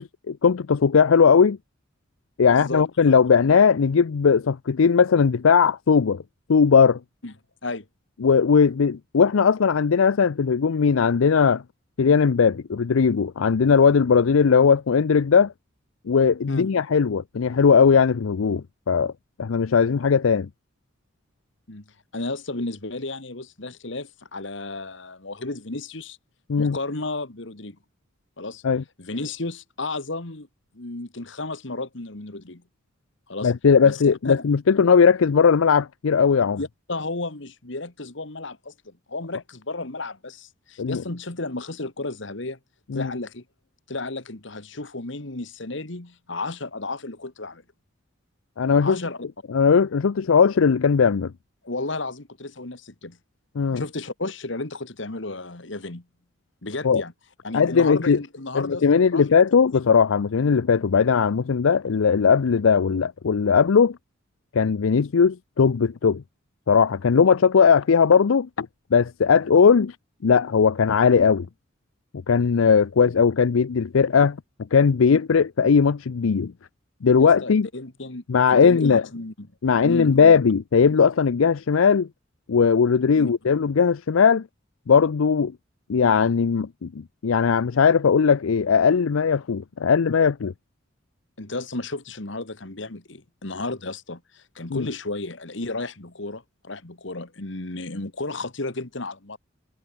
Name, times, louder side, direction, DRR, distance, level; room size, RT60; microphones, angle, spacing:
voice 1, 0.0-1.6 2.4-6.2 6.5-7.0 8.2-11.6 12.0-15.5 16.1-19.1 19.4-20.5 26.5-26.8 28.6-28.8 33.4-36.6 40.8-41.0 42.9-43.1 48.6-49.0 49.5-51.3 53.6-53.8 56.8-57.0 57.5-58.2 58.5-64.0 64.5-66.2 66.7-70.0 70.2-71.5 72.3-74.4 74.7-76.5 77.0-77.7 78.3-79.0 79.6-82.1 82.5-84.5 84.9-85.5 85.9-86.9 87.2-90.5 94.7-94.9, left 6 dB, 85° left, 0.5 m, -18 dB
voice 2, 2.4-2.8 7.2-7.3 7.6-7.9 16.5-16.7 21.7-21.9 22.1-26.2 26.6-27.8 28.4-28.6 29.0-30.5 30.7-32.6 33.3-33.5 33.8-34.5 36.6-42.6 42.9-43.4 43.9-47.6 48.8-49.3 51.6-53.2 53.7-56.0 56.6-57.1 57.4-59.3 59.5-59.7 77.2-78.2 78.5-79.5 79.8-80.4 83.2-83.3 91.4-99.4, left 2 dB, 65° left, 1.9 m, -33 dB
head